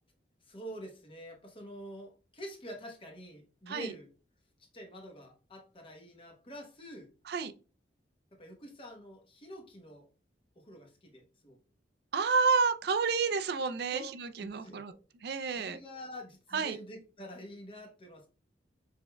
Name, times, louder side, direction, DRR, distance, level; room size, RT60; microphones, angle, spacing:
voice 1, 0.4-4.1 4.6-7.1 8.3-10.1 10.6-11.6 13.9-14.1 14.4-15.0 15.5-18.3, equal, 30° left, 0.9 m, -47 dB
voice 2, 12.1-14.9 15.2-15.8 16.5-16.8, right 5 dB, 60° right, 0.4 m, -30 dB
6.1 x 3.4 x 2.2 m
head